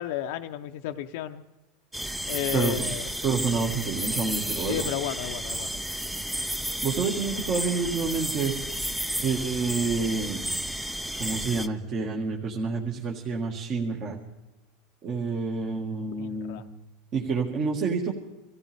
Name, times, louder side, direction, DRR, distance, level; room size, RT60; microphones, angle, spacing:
voice 1, 0.0-1.4 2.3-3.1 4.7-5.8 16.2-16.6, left 11 dB, 65° left, 6 dB, 0.6 m, -32 dB
sound 1, 1.9-11.7, right 1 dB, 5° right, 0.5 m, -32 dB
voice 2, 2.5-2.9 3.2-4.9 6.6-8.5 9.2-10.4 11.2-14.2 15.0-16.6 17.1-18.1, right 4 dB, 40° right, -1 dB, 1.8 m, -28 dB
25.5 x 15.0 x 3.6 m, 1.0 s
supercardioid pair, 140°, 0 cm